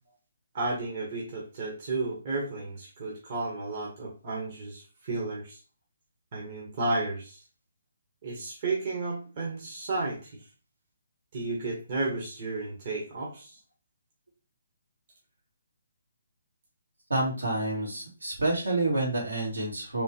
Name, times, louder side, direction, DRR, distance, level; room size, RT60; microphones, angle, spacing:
voice 1, 0.5-5.6 6.3-7.4 8.2-10.4 11.3-13.6, right 3 dB, 40° right, -2 dB, 1.2 m, -33 dB
voice 2, 17.1-20.0, right 2 dB, 80° right, -3 dB, 2.2 m, -28 dB
3.7 x 3.1 x 2.8 m, 0.35 s
figure-of-eight pair, 140°, 0 cm